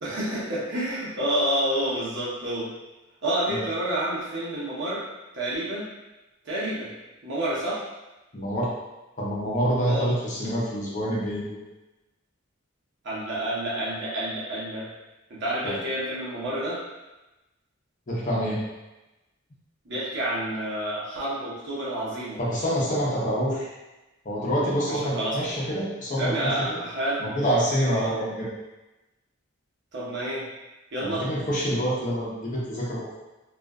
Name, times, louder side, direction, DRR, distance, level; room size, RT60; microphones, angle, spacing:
voice 1, 0.0-2.7 3.2-5.0 5.3-5.9 6.4-6.9 7.2-7.8 9.8-10.1 13.0-14.9 15.3-16.8 19.8-22.4 24.9-25.4 26.2-27.2 27.8-28.1 29.9-30.5 30.9-31.2, right 1 dB, 60° right, -8 dB, 0.9 m, -29 dB
voice 2, 8.3-8.7 9.2-11.6 15.6-15.7 18.1-18.6 22.4-23.7 24.2-26.8 27.2-28.5 31.0-33.2, equal, 40° left, -6 dB, 0.7 m, -26 dB
2.4 x 2.4 x 2.3 m, 1.0 s
head